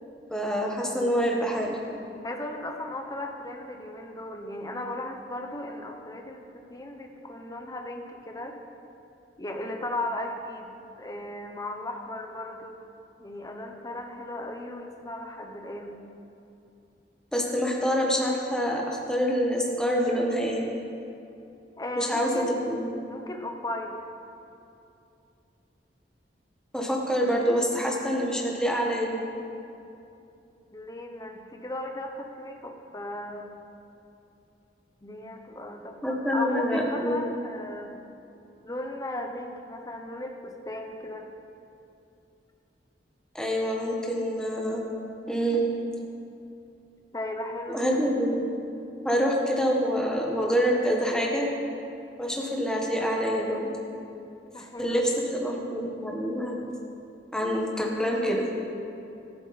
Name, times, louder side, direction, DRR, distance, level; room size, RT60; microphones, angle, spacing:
voice 1, 0.3-1.8 17.3-20.6 22.0-22.9 26.7-29.2 36.0-37.2 43.3-44.8 45.3-45.6 47.7-48.4 49.0-51.4 52.2-53.7 54.8-56.5 57.3-58.5, equal, 5° left, -1 dB, 1.4 m, -26 dB
voice 2, 2.2-8.6 9.4-12.8 13.2-16.0 21.8-22.7 23.1-24.0 30.7-33.5 35.0-37.9 38.6-41.3 47.1-48.1 54.5-55.1, left 1 dB, 20° left, 3 dB, 1.0 m, -36 dB
13.5 x 11.5 x 4.3 m, 2.7 s
head